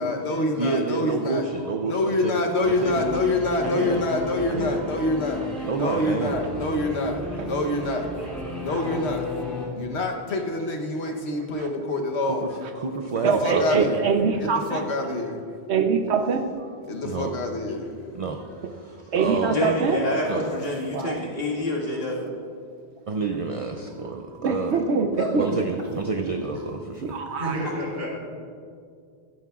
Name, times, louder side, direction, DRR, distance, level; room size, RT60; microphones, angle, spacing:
voice 1, 0.0-1.4 1.8-5.4 5.8-8.1 8.6-9.3 9.7-12.5 13.2-14.0 14.4-15.4 16.9-17.9, left 2 dB, 85° left, 3 dB, 1.3 m, -26 dB
voice 2, 0.6-2.3 2.6-3.2 3.6-4.0 4.5-4.8 5.6-6.3 12.2-12.5 12.8-13.9 17.0-17.3 18.1-18.4 18.7-19.6 20.3-20.4 23.1-24.8 25.4-27.1, right 4 dB, 40° right, 4 dB, 0.5 m, -29 dB
Singing / Musical instrument, 2.6-9.7, left 1 dB, ahead, 2.9 m, -34 dB
voice 3, 13.2-14.8 15.7-16.4 19.1-20.0 20.9-21.2 24.4-25.6 27.1-27.6, right 5 dB, 80° right, 6 dB, 1.1 m, -24 dB
voice 4, 19.5-22.2 25.1-25.3 27.4-27.7, left 1 dB, 65° left, -4 dB, 2.2 m, -27 dB
voice 5, 27.4-28.1, equal, 65° right, -4 dB, 3.5 m, -32 dB
16.0 x 12.0 x 2.4 m, 2.2 s
omnidirectional pair, 1.1 m